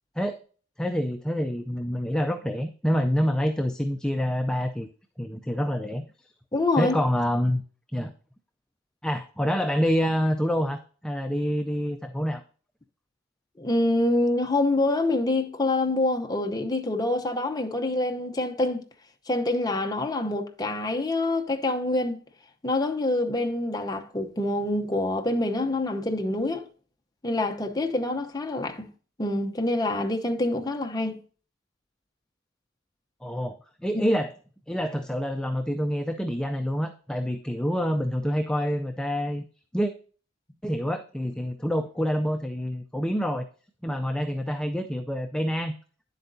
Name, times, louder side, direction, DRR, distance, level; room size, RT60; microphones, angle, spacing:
voice 1, 0.8-4.9 5.2-6.3 6.7-7.6 7.9-8.1 9.0-12.4 33.2-33.6 33.8-34.3 34.7-39.4 39.7-39.9 40.6-43.5 43.8-45.7, equal, 5° left, 0.5 m, -27 dB
voice 2, 6.5-6.9 13.6-18.8 19.3-22.2 22.6-26.6 27.2-28.9 29.2-31.2 33.9-34.0, left 2 dB, 20° left, 0.8 m, -26 dB
10.0 x 8.0 x 2.7 m
head